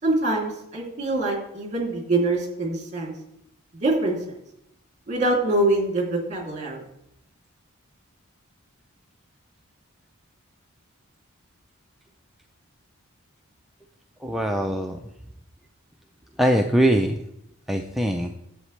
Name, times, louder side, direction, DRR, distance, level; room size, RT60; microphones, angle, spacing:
voice 1, 0.0-3.1 3.8-4.2 5.1-6.8, right 2 dB, 35° right, -1 dB, 2.9 m, -24 dB
voice 2, 14.2-15.0 16.4-17.2 17.7-18.4, right 1 dB, ahead, 2 dB, 0.4 m, -22 dB
11.0 x 7.6 x 3.3 m, 0.78 s
head